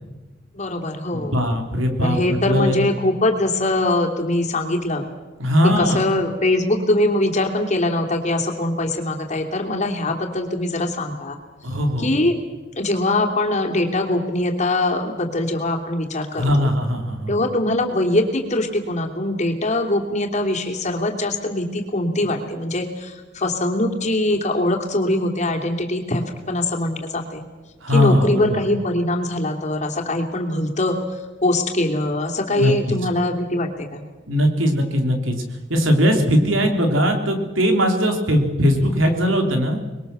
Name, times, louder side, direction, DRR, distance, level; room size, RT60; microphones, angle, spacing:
voice 1, 0.5-1.3 2.0-5.0 5.8-11.4 12.0-12.3 12.8-16.7 17.3-27.4 27.9-31.0 31.4-34.0, left 1 dB, 35° left, 2 dB, 3.0 m, -22 dB
voice 2, 1.1-2.9 5.4-6.0 11.6-12.1 16.3-17.4 27.8-28.6 32.5-32.7 34.3-35.4 35.7-39.8, equal, 80° right, 4 dB, 3.6 m, -19 dB
25.0 x 21.5 x 7.0 m, 1.2 s
head